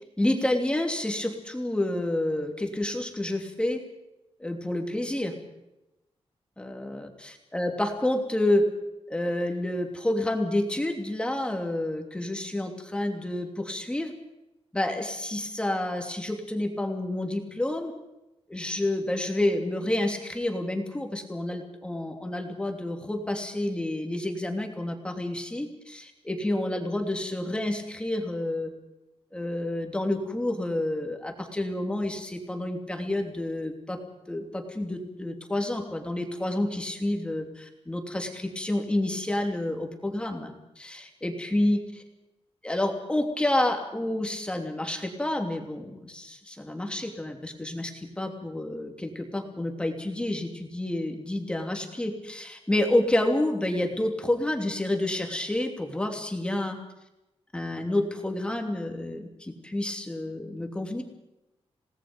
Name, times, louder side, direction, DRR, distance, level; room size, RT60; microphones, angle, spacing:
voice 1, 0.2-3.8 4.4-5.3 6.6-7.1 7.5-8.6 9.1-14.1 14.7-17.9 18.5-28.7 29.3-34.0 34.3-41.8 42.6-56.8 57.5-61.0, left 1 dB, 10° left, 3 dB, 3.0 m, -29 dB
28.0 x 18.5 x 5.3 m, 0.95 s
wide cardioid pair, 160°, 11 cm